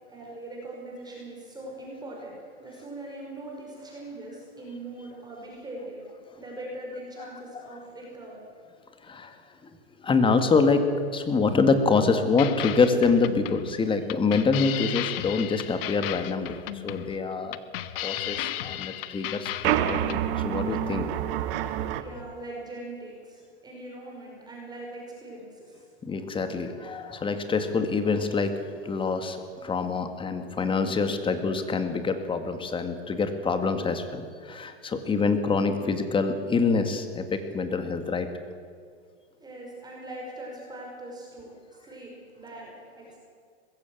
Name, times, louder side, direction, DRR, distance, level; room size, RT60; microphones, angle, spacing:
voice 1, 0.1-6.0 6.4-8.4 22.0-25.9 39.4-43.2, right 1 dB, 10° right, -2 dB, 5.5 m, -41 dB
voice 2, 9.0-9.3 10.0-10.8 11.1-17.6 18.0-20.0 20.4-21.1 26.0-28.5 28.8-38.3, left 4 dB, 15° left, 8 dB, 2.0 m, -25 dB
sound 1, 12.4-20.2, left 14 dB, 60° left, 1.2 m, -35 dB
sound 2, 19.6-22.0, right 12 dB, 55° right, 1.6 m, -27 dB
20.5 x 15.5 x 9.1 m, 2.1 s
hypercardioid pair, 130°, 33 cm